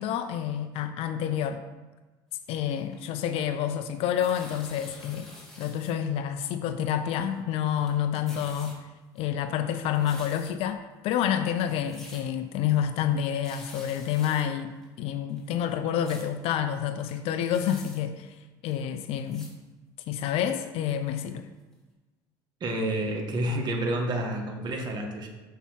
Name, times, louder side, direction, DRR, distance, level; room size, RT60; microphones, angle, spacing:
voice 1, 0.0-1.6 2.5-5.3 5.6-8.8 9.2-18.4 18.6-19.5 20.1-21.5, left 9 dB, 65° left, 8 dB, 0.7 m, -28 dB
sound 1, 2.4-3.6 3.9-5.9 6.2-6.3 7.0-7.5 7.8-8.8 9.2-10.7 11.2-11.3 11.6-12.2 12.5-12.7 13.0-13.1 13.3-14.4 14.8-14.9 15.3-16.3 16.7-16.8 17.0-18.0 18.7-18.8 19.1-19.5 20.0-20.1 20.9-21.0 21.4-21.5 21.7-21.8, left 1 dB, 5° left, 2.9 m, -48 dB
voice 2, 22.6-25.3, right 1 dB, 45° right, 2 dB, 1.5 m, -29 dB
7.2 x 5.7 x 5.7 m, 1.2 s
supercardioid pair, 95°, 11 cm